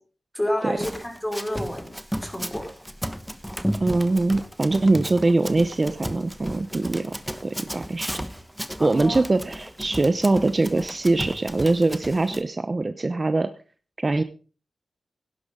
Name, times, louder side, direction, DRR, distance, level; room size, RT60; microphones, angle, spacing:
voice 1, 0.3-2.0 2.2-2.6 8.8-9.2, left 1 dB, 15° left, 4 dB, 4.7 m, -29 dB
Run, 0.8-12.4, equal, ahead, 1.2 m, -34 dB
voice 2, 3.8-7.1 7.4-8.2 8.8-13.5 14.0-14.2, right 2 dB, 35° right, 11 dB, 0.8 m, -22 dB
17.0 x 10.5 x 3.7 m, 0.37 s
cardioid pair, 65°, 0 cm